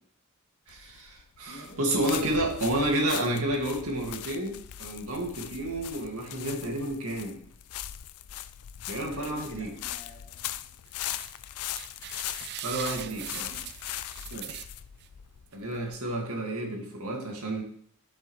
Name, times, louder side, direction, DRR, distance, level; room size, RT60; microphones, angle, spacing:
sound 1, 0.7-16.2, left 12 dB, 80° left, 0.4 m, -40 dB
voice 1, 0.7-7.4 8.9-9.7 12.6-13.5 14.3-14.6 15.5-17.6, right 1 dB, 75° right, 1 dB, 2.0 m, -30 dB
voice 2, 1.4-2.2 9.1-10.7 12.8-13.2 13.5-13.6, equal, 55° left, 4 dB, 1.4 m, -47 dB
sound 2, 10.9-11.3 11.7-15.1 15.5-15.6 15.9-16.0, right 11 dB, 50° right, 0.4 m, -41 dB
10.0 x 8.2 x 3.1 m, 0.63 s
head